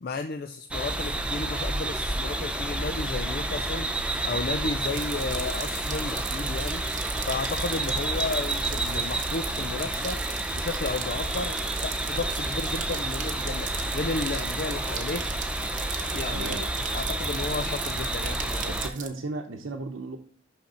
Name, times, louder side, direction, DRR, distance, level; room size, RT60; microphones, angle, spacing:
voice 1, 0.0-10.2 10.5-15.3 16.1-16.7 16.9-18.8, left 3 dB, 50° left, 0.4 m, -33 dB
sound 1, 0.7-18.9, right 2 dB, 5° right, 0.5 m, -30 dB
sound 2, 4.8-19.1, right 8 dB, 40° right, 0.9 m, -39 dB
voice 2, 16.3-16.7 18.6-20.2, right 2 dB, 80° right, 0.8 m, -35 dB
6.4 x 5.8 x 4.2 m
head